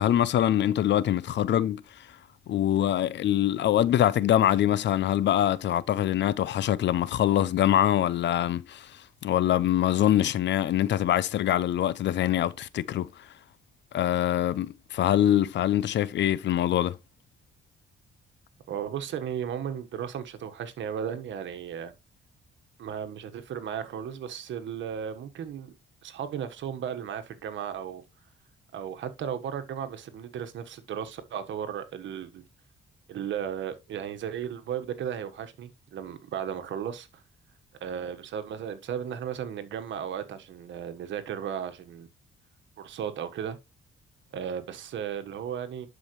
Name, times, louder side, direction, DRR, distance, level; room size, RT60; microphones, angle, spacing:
voice 1, 0.0-2.1 2.5-13.3 13.9-17.0, left 11 dB, 65° left, 0.6 m, -24 dB
voice 2, 18.7-21.9 22.8-25.7 26.0-28.0 28.7-32.4 33.1-37.2 37.8-42.1 42.8-43.6 44.3-45.9, right 8 dB, 70° right, 1.5 m, -35 dB
11.5 x 5.1 x 3.2 m
cardioid pair, 90°, 20 cm